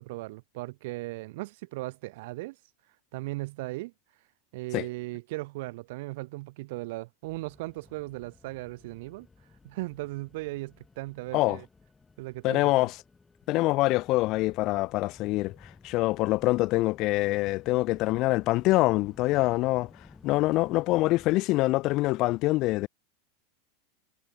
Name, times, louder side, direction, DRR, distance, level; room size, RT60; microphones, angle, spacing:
voice 1, 0.0-2.6 3.1-3.9 4.5-9.3 9.6-11.7 12.2-12.9, right 21 dB, 65° right, 2.5 m, -37 dB
sound 1, 7.2-21.4, left 4 dB, 15° left, 7.6 m, -56 dB
voice 2, 12.4-13.0 13.5-15.6 15.8-19.9 20.2-22.9, left 19 dB, 45° left, 0.6 m, -25 dB
supercardioid pair, 125°, 0 cm